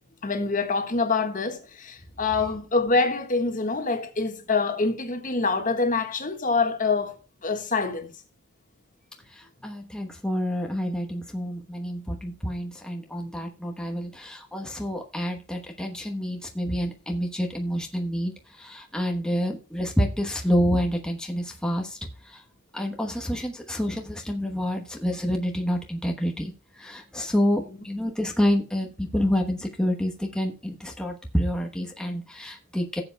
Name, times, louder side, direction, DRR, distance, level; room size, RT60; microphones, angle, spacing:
voice 1, 0.2-7.2 7.4-8.1 19.3-19.5, left 3 dB, 40° left, 1.6 m, -25 dB
voice 2, 9.2-22.4 22.7-33.0, equal, 5° left, 1.1 m, -28 dB
17.0 x 7.8 x 2.2 m
head